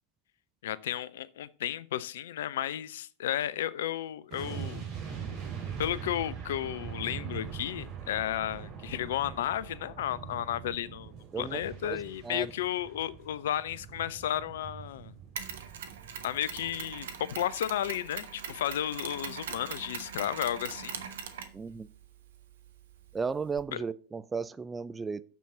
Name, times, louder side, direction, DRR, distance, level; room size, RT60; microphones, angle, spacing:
voice 1, 0.6-4.8 5.8-15.1 16.2-21.0 23.7-23.8, left 11 dB, 55° left, 0.5 m, -33 dB
sound 1, 4.3-17.4 17.7-17.9, right 7 dB, 35° right, 3.3 m, -42 dB
voice 2, 11.3-12.5 21.5-21.9 23.1-25.2, right 5 dB, 15° right, 0.4 m, -35 dB
Mechanisms, 15.4-23.6, right 7 dB, 60° right, 1.1 m, -42 dB
6.8 x 6.3 x 6.8 m
figure-of-eight pair, 90°, 0 cm